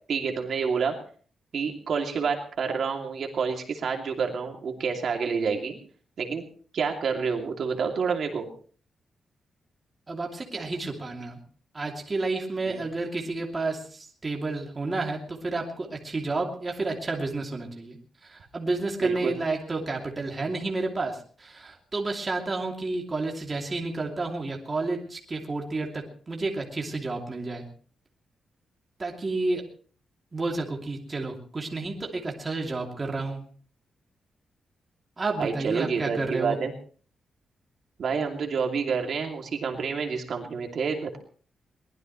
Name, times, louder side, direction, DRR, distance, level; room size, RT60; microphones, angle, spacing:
voice 1, 0.1-1.0 1.5-5.7 6.2-6.4 6.7-8.5 12.7-12.8 19.0-19.3 35.4-36.7 38.0-41.2, right 5 dB, 55° right, 2 dB, 2.7 m, -28 dB
voice 2, 10.1-11.4 11.7-18.0 18.2-27.6 29.0-29.6 30.3-33.4 35.2-36.6, right 3 dB, 25° right, 0 dB, 2.7 m, -31 dB
23.0 x 19.5 x 3.2 m, 0.43 s
wide cardioid pair, 165°, 0 cm